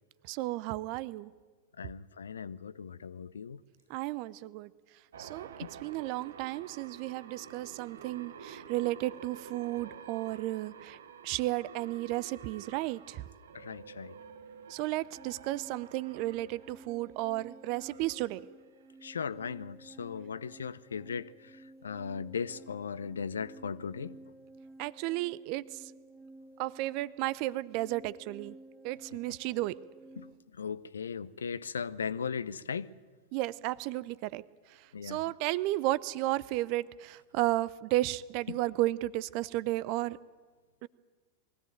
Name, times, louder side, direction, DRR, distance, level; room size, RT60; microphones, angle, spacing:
voice 1, 0.3-1.3 3.9-4.7 5.2-5.5 5.8-11.0 11.2-13.2 14.7-18.4 24.8-25.9 26.6-28.6 28.8-29.7 33.3-34.4 34.7-40.2 40.8-40.9, right 17 dB, 45° right, 0.6 m, -33 dB
voice 2, 1.8-3.6 5.6-5.7 13.5-14.1 19.0-21.3 21.8-24.2 30.2-30.3 30.6-32.9 34.9-35.2 38.5-38.6, left 6 dB, 70° left, 0.6 m, -37 dB
sound 1, 5.1-19.1, right 7 dB, 65° right, 1.3 m, -50 dB
sound 2, 15.2-30.3, right 2 dB, 5° right, 2.1 m, -53 dB
22.0 x 16.5 x 9.0 m
figure-of-eight pair, 90°, 0 cm